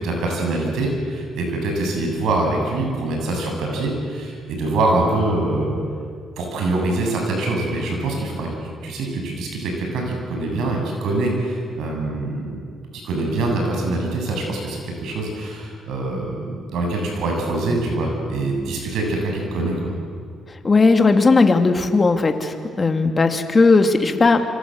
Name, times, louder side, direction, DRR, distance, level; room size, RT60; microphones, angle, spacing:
voice 1, 0.0-5.8 6.4-8.5 8.8-12.6 13.0-19.9, right 2 dB, 80° right, 1 dB, 7.9 m, -24 dB
voice 2, 20.6-24.5, left 3 dB, 30° left, 6 dB, 2.6 m, -16 dB
26.5 x 25.5 x 8.0 m, 2.2 s
cardioid pair, 90°, 0 cm